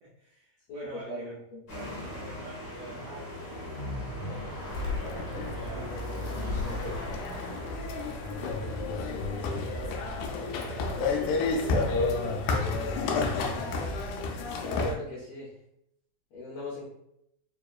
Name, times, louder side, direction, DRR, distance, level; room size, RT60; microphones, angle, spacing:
voice 1, 0.0-1.4 1.7-4.6 5.0-5.9 6.3-7.4 7.7-8.8 9.3-13.9, right 3 dB, 85° right, -4 dB, 1.3 m, -47 dB
voice 2, 0.7-1.6 14.6-15.5 16.3-16.8, left 1 dB, 70° left, -5 dB, 1.8 m, -38 dB
sound 1, 1.7-12.8, equal, 50° left, 1.2 m, -40 dB
sound 2, 4.7-15.0, left 3 dB, 90° left, 2.1 m, -31 dB
4.7 x 2.8 x 2.3 m, 0.76 s
omnidirectional pair, 3.4 m